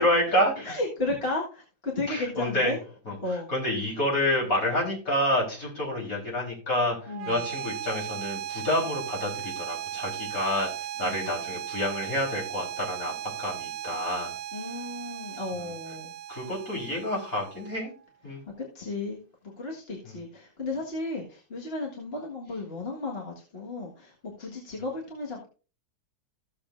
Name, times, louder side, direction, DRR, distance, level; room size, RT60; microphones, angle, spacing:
voice 1, 0.0-0.8 2.1-2.7 3.1-10.7 11.0-13.1 13.4-14.3 15.6-15.7 16.3-17.9 18.2-18.4 20.0-20.1, left 1 dB, 60° left, -3 dB, 4.7 m, -28 dB
voice 2, 0.6-2.8 3.2-3.5 7.1-7.4 11.0-11.4 14.5-16.1 18.6-19.2 19.6-25.5, left 2 dB, 40° left, -2 dB, 1.9 m, -34 dB
sound 1, 7.0-18.0, right 11 dB, 85° right, 1.3 m, -37 dB
15.0 x 6.9 x 2.6 m, 0.36 s
omnidirectional pair, 1.7 m